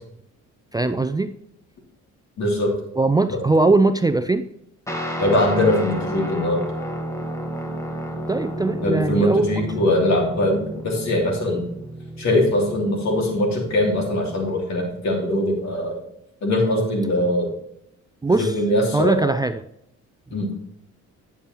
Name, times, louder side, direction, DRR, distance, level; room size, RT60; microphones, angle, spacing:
voice 1, 0.7-1.3 3.0-4.4 8.3-9.5 18.2-18.6 18.9-19.6, right 3 dB, 15° right, 10 dB, 0.4 m, -20 dB
voice 2, 2.4-2.7 3.3-3.4 5.2-6.6 8.8-11.6 12.2-16.0 16.4-17.5 18.4-19.3 20.3-20.5, left 1 dB, 65° left, 0 dB, 3.0 m, -21 dB
Guitar, 4.9-14.6, equal, 10° left, 1.6 m, -32 dB
10.0 x 7.0 x 3.0 m, 0.76 s
cardioid pair, 90°, 30 cm